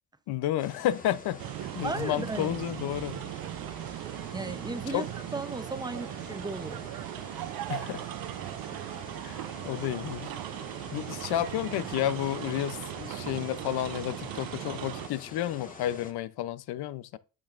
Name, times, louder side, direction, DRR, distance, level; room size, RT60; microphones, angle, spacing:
voice 1, 0.3-3.2 4.9-5.1 7.7-8.0 9.2-10.3 10.9-17.2, left 12 dB, 75° left, 0.7 m, -31 dB
sound 1, 0.6-16.1, left 3 dB, 20° left, 1.6 m, -47 dB
sound 2, 1.4-15.1, right 15 dB, 65° right, 0.5 m, -38 dB
voice 2, 1.8-2.5 4.3-5.1 5.3-6.9, right 3 dB, 10° right, 0.7 m, -35 dB
8.7 x 8.5 x 2.5 m
cardioid pair, 120°, 38 cm